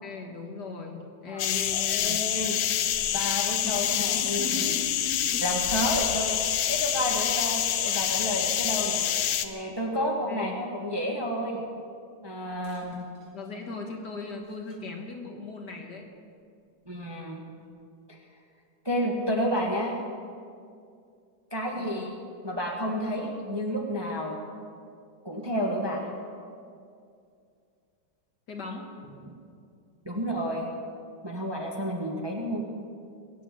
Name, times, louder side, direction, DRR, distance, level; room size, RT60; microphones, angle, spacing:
voice 1, 0.0-2.3 3.6-5.4 10.3-10.5 12.9-13.0 13.3-16.1 21.7-22.1 28.5-28.9, left 3 dB, 55° left, 2 dB, 2.0 m, -38 dB
sound 1, 1.4-9.5, left 11 dB, 70° left, 1.4 m, -27 dB
voice 2, 1.7-2.6 3.1-4.7 5.4-6.4 6.7-9.0 9.4-11.6 12.2-13.1 16.9-17.4 18.1-18.2 18.8-20.0 21.5-22.1 22.4-24.4 25.2-26.1 29.2-29.3 30.0-30.7 31.2-32.7, equal, 15° right, 0 dB, 1.3 m, -30 dB
sound 2, 3.5-9.5 9.9-10.1 12.5-14.9 15.9-16.0 16.8-16.9, right 2 dB, 60° right, 3.1 m, -50 dB
22.5 x 8.4 x 7.6 m, 2.4 s
omnidirectional pair, 2.3 m